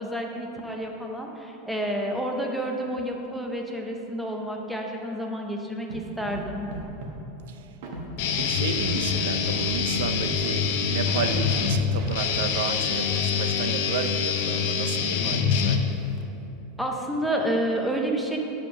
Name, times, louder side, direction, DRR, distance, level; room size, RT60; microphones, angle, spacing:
voice 1, 0.0-6.7 16.8-18.4, right 1 dB, ahead, 1 dB, 0.5 m, -29 dB
Scratching (performance technique), 5.9-6.0 6.2-6.4 6.7-7.1 7.8-8.4 8.7-9.2 9.4-9.7 9.9-10.4 11.1-11.6 12.0-12.4, right 2 dB, 50° right, 1.1 m, -36 dB
Guitar, 8.2-16.2, left 6 dB, 50° left, 0.6 m, -25 dB
voice 2, 8.4-15.8, right 6 dB, 75° right, 9 dB, 0.5 m, -32 dB
7.2 x 5.1 x 5.9 m, 3.0 s
supercardioid pair, 180°, 0 cm